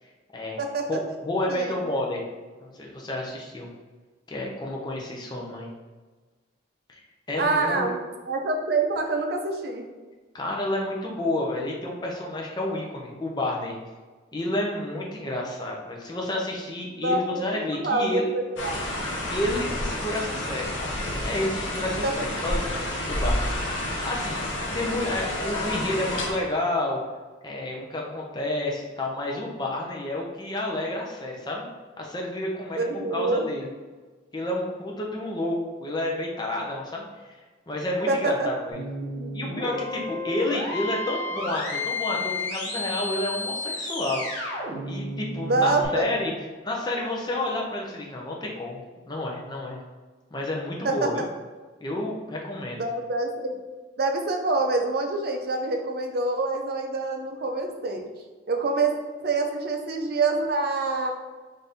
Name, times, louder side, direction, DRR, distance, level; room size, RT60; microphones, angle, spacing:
voice 1, 0.9-2.3 2.6-3.7 4.3-5.7 6.9-7.0 7.3-7.9 10.3-13.7 14.3-18.3 19.3-23.5 23.8-27.0 27.4-31.7 32.0-33.7 34.3-37.4 37.7-38.8 39.3-44.4 44.9-46.3 46.6-49.8 50.3-51.3 51.8-52.8, left 1 dB, 20° left, -1 dB, 0.6 m, -30 dB
voice 2, 7.4-8.0 8.3-9.9 17.0-18.1 18.3-18.8 22.0-22.1 32.7-33.4 38.1-38.5 39.2-39.5 45.4-46.1 50.8-51.1 52.8-53.6 54.0-58.0 58.5-58.9 59.2-61.1, right 3 dB, 55° right, 3 dB, 0.5 m, -26 dB
sound 1, 18.6-26.3, left 1 dB, 85° left, 0.7 m, -29 dB
sound 2, 38.7-45.9, left 2 dB, 40° left, 1.2 m, -32 dB
4.0 x 2.6 x 3.4 m, 1.3 s
head